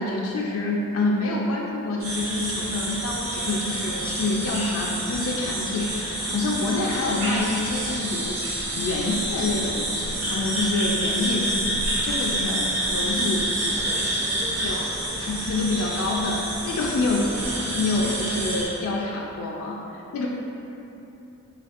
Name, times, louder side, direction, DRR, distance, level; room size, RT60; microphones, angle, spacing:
voice 1, 0.0-13.8 14.6-14.8 15.3-17.4 17.6-20.3, left 2 dB, 75° left, -2 dB, 0.3 m, -27 dB
sound 1, 2.0-18.7, right 1 dB, 80° right, 1.2 m, -28 dB
voice 2, 13.7-15.2, equal, 40° right, -3 dB, 0.5 m, -38 dB
4.1 x 3.1 x 2.4 m, 3.0 s
head